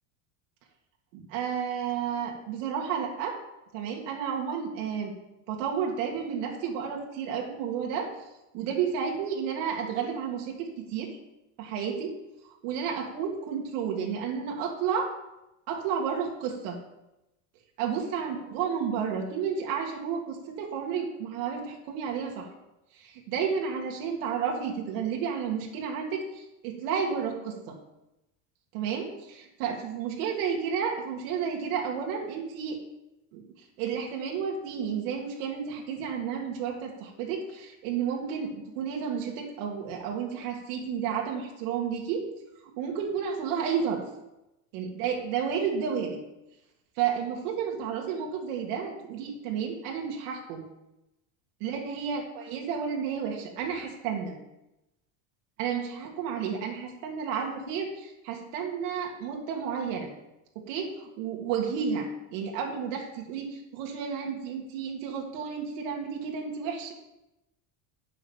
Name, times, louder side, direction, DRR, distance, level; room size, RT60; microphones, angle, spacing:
voice 1, 1.1-3.4 3.7-5.1 5.5-8.3 8.5-11.2 11.6-12.1 12.6-15.1 15.7-16.8 17.8-22.5 22.9-27.8 28.7-32.8 33.3-33.4 33.8-42.2 42.8-44.0 44.7-46.2 47.0-50.7 51.6-54.4 55.6-60.1 60.6-66.9, right 7 dB, 75° right, 0 dB, 1.9 m, -31 dB
8.5 x 6.1 x 7.2 m, 0.93 s
cardioid pair, 150°, 40 cm